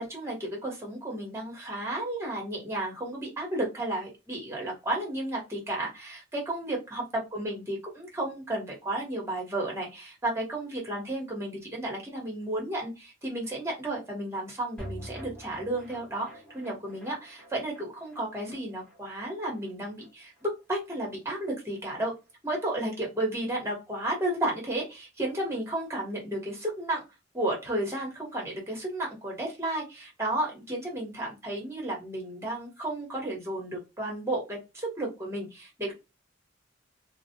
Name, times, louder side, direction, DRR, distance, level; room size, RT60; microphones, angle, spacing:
voice 1, 0.0-22.1 22.4-27.0 27.3-35.9, right 1 dB, 15° right, -1 dB, 1.1 m, -33 dB
sound 1, 14.8-21.2 21.5-21.6 21.8-21.9, equal, 5° left, 1.0 m, -47 dB
2.3 x 2.1 x 2.8 m, 0.25 s
head